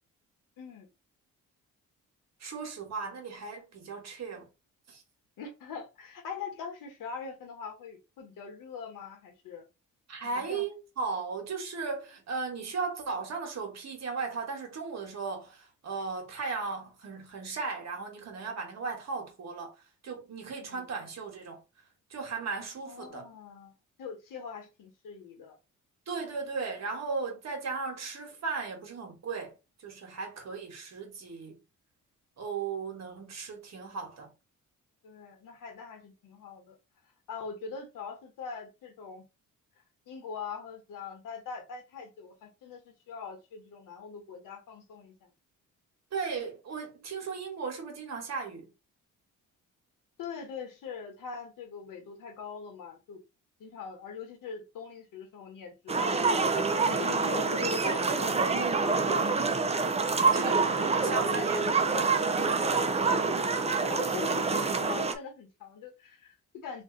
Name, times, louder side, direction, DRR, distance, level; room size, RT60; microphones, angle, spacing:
voice 1, 0.6-0.9 5.4-9.6 10.3-10.6 20.6-20.9 22.9-23.7 24.0-25.6 35.0-36.8 37.3-39.2 40.1-45.3 50.2-53.2 53.6-56.2 56.8-59.3 63.9-66.8, left 5 dB, 80° left, 1.1 m, -42 dB
voice 2, 2.4-4.5 4.9-5.0 10.1-19.8 20.0-21.6 22.1-23.3 26.1-31.6 32.4-34.3 46.1-48.7 60.2-62.7, right 4 dB, 55° right, 1.2 m, -36 dB
sound 1, 55.9-65.1, right 4 dB, 20° right, 0.4 m, -27 dB
2.6 x 2.4 x 3.7 m
cardioid pair, 90°, 32 cm